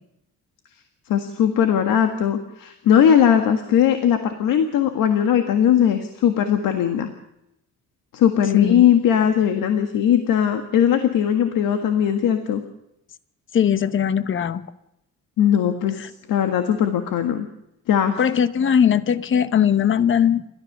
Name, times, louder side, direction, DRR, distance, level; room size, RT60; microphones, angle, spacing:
voice 1, 1.1-7.1 8.1-12.6 15.4-17.5 17.9-18.2, left 9 dB, 90° left, 6 dB, 1.8 m, -19 dB
voice 2, 8.5-8.8 13.5-14.6 16.0-16.1 18.2-20.4, left 8 dB, 40° left, 13 dB, 1.0 m, -19 dB
28.5 x 13.5 x 6.8 m, 0.84 s
cardioid pair, 170°, 32 cm